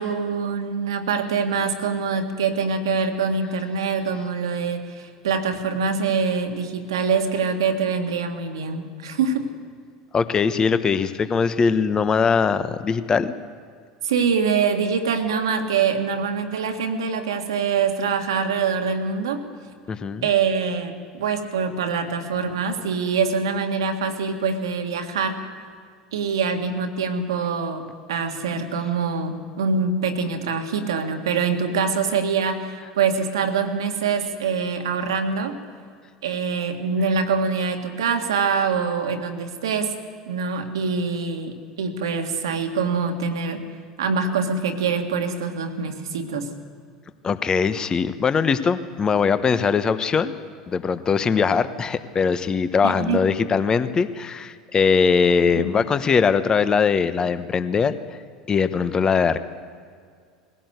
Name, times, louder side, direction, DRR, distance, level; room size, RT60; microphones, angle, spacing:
voice 1, 0.0-9.5 14.0-19.4 20.2-25.4 26.1-35.6 36.2-39.9 40.2-43.6 44.0-46.5 52.8-53.2 55.6-55.7, right 5 dB, 75° right, 6 dB, 1.8 m, -24 dB
voice 2, 10.1-13.3 19.9-20.3 47.2-50.3 50.7-57.9 58.5-59.4, left 5 dB, 30° left, 12 dB, 1.1 m, -21 dB
20.5 x 16.5 x 8.1 m, 2.1 s
figure-of-eight pair, 75°, 3 cm